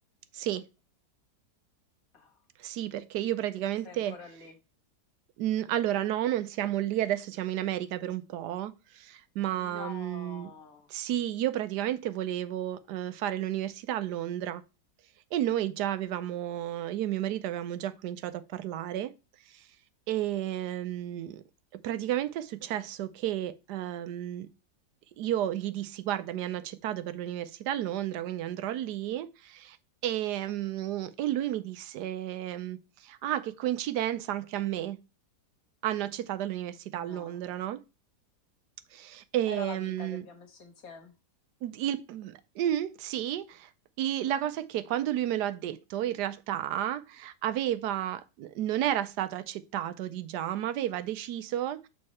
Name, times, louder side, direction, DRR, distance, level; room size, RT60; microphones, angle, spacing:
voice 1, 0.3-0.6 2.6-4.2 5.4-10.5 10.9-14.6 15.3-19.1 20.1-21.4 21.8-24.5 25.2-29.8 30.0-32.8 33.0-35.0 35.8-37.8 38.9-40.3 41.6-43.7 44.0-51.9, right 12 dB, 80° right, 1.2 m, -32 dB
voice 2, 3.9-4.5 9.5-10.9 37.0-37.5 39.5-41.1, left 3 dB, 60° left, 1.8 m, -45 dB
6.6 x 4.3 x 4.1 m
omnidirectional pair, 1.8 m